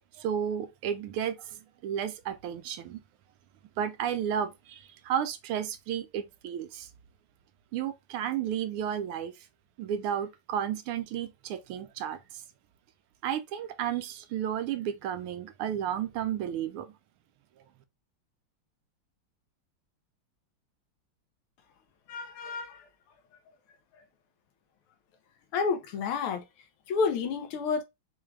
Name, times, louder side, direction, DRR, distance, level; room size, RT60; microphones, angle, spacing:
voice 1, 0.2-1.6 1.8-3.0 3.8-6.9 7.7-9.3 9.8-12.2 13.2-16.9, right 9 dB, 90° right, 1.5 m, -32 dB
voice 2, 22.1-22.8 25.5-26.4 26.9-27.8, left 5 dB, 85° left, 1.7 m, -30 dB
4.6 x 2.4 x 3.2 m
omnidirectional pair, 2.3 m